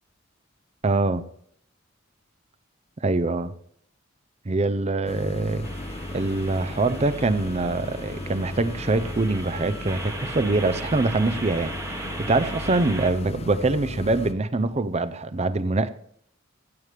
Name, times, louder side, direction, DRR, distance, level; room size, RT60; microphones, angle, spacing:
voice 1, 0.8-1.2 3.0-3.5 4.4-5.7 6.1-15.9, right 2 dB, 30° right, 0.6 m, -24 dB
sound 1, 5.1-14.3, left 2 dB, 30° left, 0.6 m, -36 dB
sound 2, 5.6-13.1, right 2 dB, 15° right, 1.2 m, -38 dB
16.5 x 8.3 x 3.4 m
head